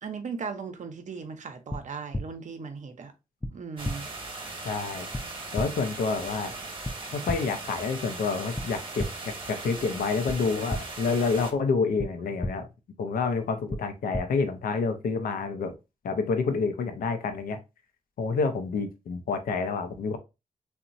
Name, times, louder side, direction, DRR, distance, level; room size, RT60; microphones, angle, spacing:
voice 1, 0.0-3.1 3.5-4.1, right 5 dB, 55° right, 0.6 m, -37 dB
sound 1, 1.7-1.8 2.1-2.2 3.4-3.5 3.8-3.9 5.1-5.2 5.6-5.7 6.8-6.9 7.3-7.4 8.6-8.7 9.0-9.1 10.3-10.4 10.7-10.8 12.0-12.1 12.4-12.5 13.7-13.8 14.1-14.2, left 1 dB, 10° left, 0.4 m, -30 dB
sound 2, 3.8-11.5, right 3 dB, 35° right, 0.9 m, -39 dB
voice 2, 4.6-5.1 5.5-6.5 7.1-12.7 13.0-15.7 16.0-17.6 18.2-20.2, left 4 dB, 75° left, 0.5 m, -28 dB
2.8 x 2.1 x 2.5 m
supercardioid pair, 50°, 15 cm